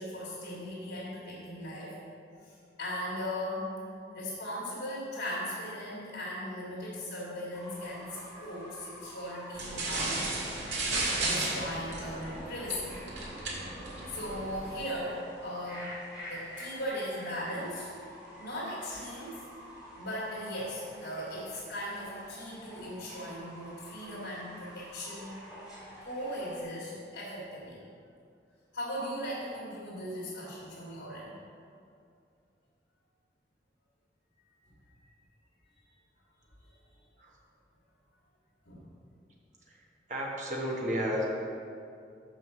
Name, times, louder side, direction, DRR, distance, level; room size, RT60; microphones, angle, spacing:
voice 1, 0.0-2.0 2.4-3.7 4.1-10.2 11.2-12.9 14.1-15.9 16.3-17.9 18.4-19.4 20.0-25.4 26.0-27.8 28.7-31.4 38.7-38.9, equal, 85° left, -10 dB, 2.2 m, -38 dB
Fowl / Bird, 7.5-26.6, equal, 5° right, 2.2 m, -49 dB
sound 1, 9.5-14.8, right 2 dB, 90° right, 2.1 m, -34 dB
voice 2, 40.1-41.2, equal, 45° right, -2 dB, 1.3 m, -32 dB
6.2 x 5.7 x 6.8 m, 2.5 s
head